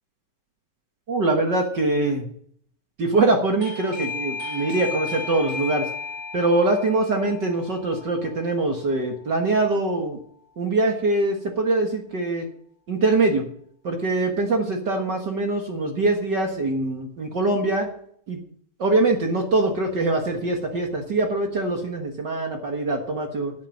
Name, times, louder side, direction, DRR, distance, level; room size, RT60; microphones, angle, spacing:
voice 1, 1.1-2.3 3.0-5.9 6.3-10.2 10.6-12.5 12.9-13.5 13.8-17.9 18.3-18.4 18.8-23.5, right 2 dB, 45° right, 3 dB, 1.5 m, -23 dB
Doorbell, 3.6-10.1, left 5 dB, 25° right, 1.9 m, -35 dB
11.5 x 8.5 x 6.3 m, 0.63 s
omnidirectional pair, 3.6 m